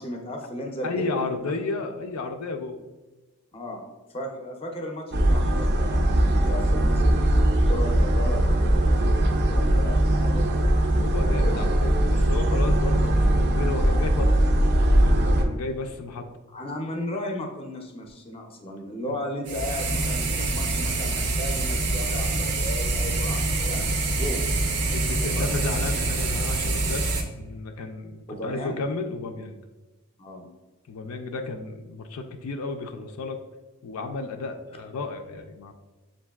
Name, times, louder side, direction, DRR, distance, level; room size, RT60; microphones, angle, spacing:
voice 1, 0.0-1.3 3.5-3.8 4.1-7.2 7.7-10.5 11.4-11.7 16.5-23.9 24.1-24.5 25.0-25.6 28.3-28.8 30.2-30.5, left 1 dB, 25° left, 2 dB, 0.5 m, -35 dB
voice 2, 0.8-2.8 11.0-14.4 15.0-16.3 19.1-19.2 24.9-27.1 27.4-29.6 30.9-33.4 33.8-35.7, left 3 dB, 80° left, 5 dB, 0.4 m, -33 dB
sound 1, 5.1-15.4, right 1 dB, 50° right, 0.4 m, -20 dB
sound 2, 19.5-27.2, right 2 dB, 90° right, 0.7 m, -26 dB
7.1 x 2.6 x 2.3 m, 1.2 s
head